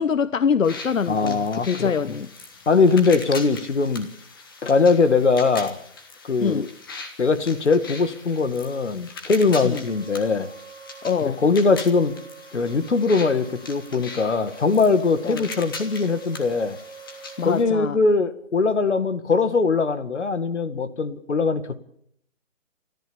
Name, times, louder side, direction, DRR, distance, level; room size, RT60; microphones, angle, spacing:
voice 1, 0.0-1.4 1.6-2.3 6.4-6.7 9.6-9.8 11.0-11.4 15.2-15.4 17.4-18.0, left 6 dB, 80° left, 1.0 m, -24 dB
sound 1, 0.6-17.6, left 3 dB, 15° left, 1.5 m, -40 dB
voice 2, 1.1-2.1 2.7-4.1 4.6-5.8 6.2-6.7 7.2-10.5 11.2-12.1 12.5-16.8 17.4-21.8, left 4 dB, 60° left, 2.1 m, -21 dB
sound 2, 9.8-17.8, right 6 dB, 5° right, 1.9 m, -46 dB
27.0 x 14.0 x 7.2 m
hypercardioid pair, 170°, 39 cm